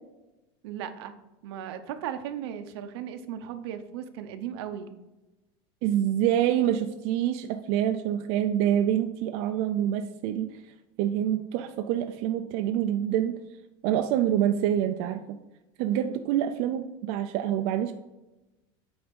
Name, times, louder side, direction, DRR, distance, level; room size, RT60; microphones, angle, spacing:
voice 1, 0.6-1.1 1.4-4.9 15.9-16.2, right 9 dB, 80° right, 9 dB, 0.8 m, -36 dB
voice 2, 5.8-10.5 11.0-13.4 13.8-15.2 15.8-17.9, right 10 dB, 50° right, 7 dB, 0.4 m, -26 dB
8.7 x 3.5 x 5.2 m, 1.0 s
cardioid pair, 170°, 13 cm